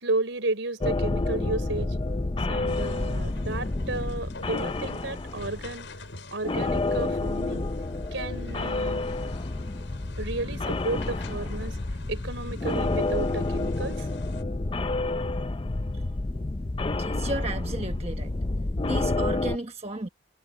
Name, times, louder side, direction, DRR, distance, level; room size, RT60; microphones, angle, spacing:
voice 1, 0.0-2.0 2.5-5.9 6.3-7.7 8.1-9.0 10.2-11.8 12.1-14.1, right 2 dB, 80° right, 4.2 m, -32 dB
sound 1, 0.8-6.1 6.4-19.6, left 2 dB, 25° left, 0.5 m, -29 dB
sound 2, 2.7-14.4, left 2 dB, 75° left, 5.5 m, -46 dB
voice 2, 17.0-18.3 18.9-20.1, right 2 dB, 35° right, 1.4 m, -33 dB
head